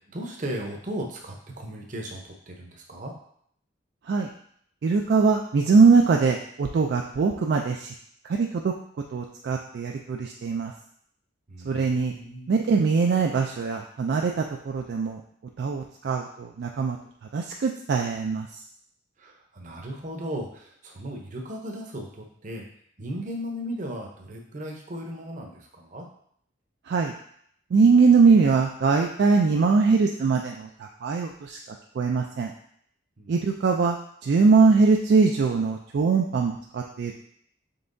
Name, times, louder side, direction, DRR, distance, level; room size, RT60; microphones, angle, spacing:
voice 1, 0.1-3.1 11.5-12.5 19.2-22.6 23.0-26.1 33.2-33.3, equal, 40° right, 1 dB, 0.7 m, -36 dB
voice 2, 4.8-7.9 8.2-8.7 9.1-10.7 11.6-12.1 12.5-15.2 15.6-17.0 17.3-18.6 26.9-27.1 27.7-31.6 32.0-32.5 33.3-34.0 34.2-37.1, right 4 dB, 60° right, 2 dB, 0.3 m, -22 dB
5.4 x 3.4 x 2.6 m, 0.66 s
head